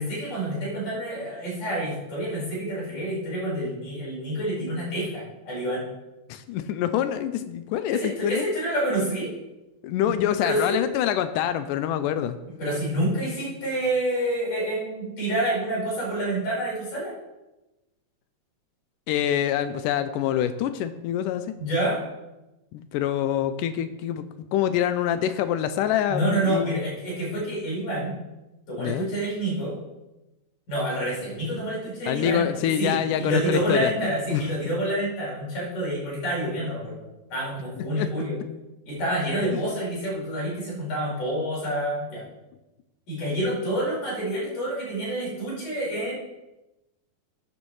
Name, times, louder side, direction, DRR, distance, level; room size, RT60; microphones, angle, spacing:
voice 1, 0.0-5.8 7.9-9.3 10.4-10.8 12.6-17.1 21.6-22.0 26.1-28.1 28.7-29.8 30.7-32.5 32.8-37.0 37.3-38.4 38.9-42.2 43.1-46.1, right 1 dB, 55° left, -6 dB, 6.3 m, -28 dB
voice 2, 6.3-8.4 9.8-12.4 19.1-21.4 22.7-24.2 24.5-26.8 28.8-29.1 32.1-34.4 37.9-38.1, left 10 dB, 85° left, 11 dB, 1.9 m, -26 dB
14.5 x 9.5 x 3.2 m, 1.0 s
omnidirectional pair, 4.3 m